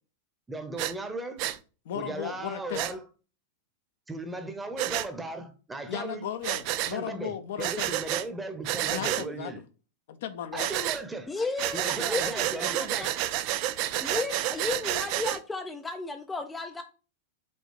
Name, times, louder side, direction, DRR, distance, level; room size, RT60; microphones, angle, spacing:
voice 1, 0.5-1.4 1.9-3.0 4.1-6.3 6.9-9.6 10.5-11.3 11.7-13.1, right 2 dB, 10° right, 1.0 m, -37 dB
Breathing, 0.8-0.9 1.4-1.6 2.7-2.9 4.8-5.1 6.4-7.0 7.6-8.3 8.6-9.3 10.6-11.0 11.6-15.4, right 14 dB, 45° right, 0.4 m, -30 dB
voice 2, 1.8-2.8 5.9-7.9 8.8-9.6 10.1-10.7, left 10 dB, 55° left, 0.8 m, -36 dB
voice 3, 11.3-13.1 14.0-16.8, left 3 dB, 10° left, 0.6 m, -34 dB
5.3 x 3.8 x 4.9 m
figure-of-eight pair, 90°, 0 cm